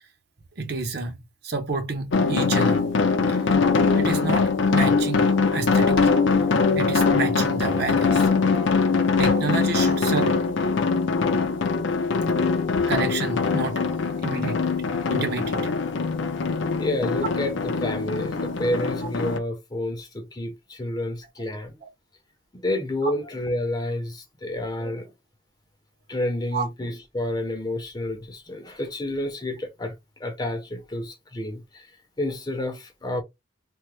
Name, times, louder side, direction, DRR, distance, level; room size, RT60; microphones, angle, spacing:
voice 1, 0.6-1.2 1.4-2.9 3.4-3.5 3.9-6.1 6.7-8.3 9.2-10.4 12.7-13.8 14.2-14.6 15.1-15.7 21.8-21.9 23.0-23.1 26.5-26.7, right 4 dB, 55° right, 0.8 m, -29 dB
sound 1, 2.1-19.4, left 4 dB, 70° left, 0.5 m, -22 dB
voice 2, 16.8-21.7 22.5-25.1 26.1-29.9 30.2-31.9 32.2-33.2, left 1 dB, 20° left, 0.6 m, -29 dB
3.4 x 2.1 x 3.1 m
head